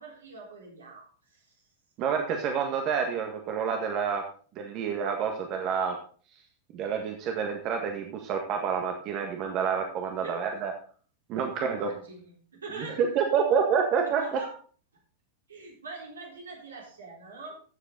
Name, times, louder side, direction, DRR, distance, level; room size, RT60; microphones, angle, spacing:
voice 1, 0.0-1.6 10.2-10.4 11.3-13.2 14.0-14.5 15.5-17.5, right 3 dB, 80° right, -1 dB, 4.2 m, -44 dB
voice 2, 2.0-4.2 4.6-6.0 6.7-10.7 11.3-11.9 13.0-14.4, right 6 dB, 40° right, 3 dB, 1.7 m, -28 dB
14.0 x 7.5 x 4.0 m, 0.42 s
figure-of-eight pair, 95°, 0 cm